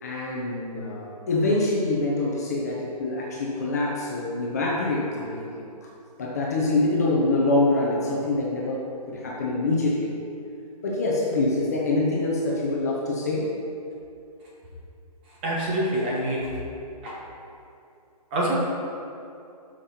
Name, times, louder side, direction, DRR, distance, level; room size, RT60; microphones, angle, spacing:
voice 1, 0.0-5.6 6.2-10.1 10.8-13.5, left 2 dB, 25° left, -3 dB, 0.9 m, -25 dB
voice 2, 15.4-16.6 17.0-17.2 18.3-18.5, right 1 dB, 15° right, -5 dB, 1.2 m, -26 dB
12.0 x 5.8 x 4.3 m, 2.6 s
hypercardioid pair, 180°, 20 cm